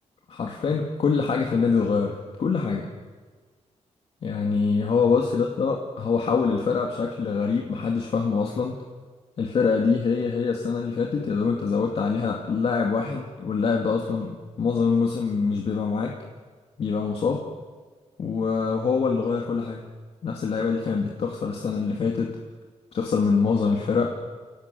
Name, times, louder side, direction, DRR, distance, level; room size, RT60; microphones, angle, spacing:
voice 1, 0.3-2.9 4.2-8.8 9.4-16.2 16.8-17.5 18.2-19.9 20.2-22.4 22.9-24.2, left 5 dB, 55° left, 1 dB, 2.4 m, -24 dB
29.0 x 18.5 x 7.9 m, 1.4 s
wide cardioid pair, 140°, 12 cm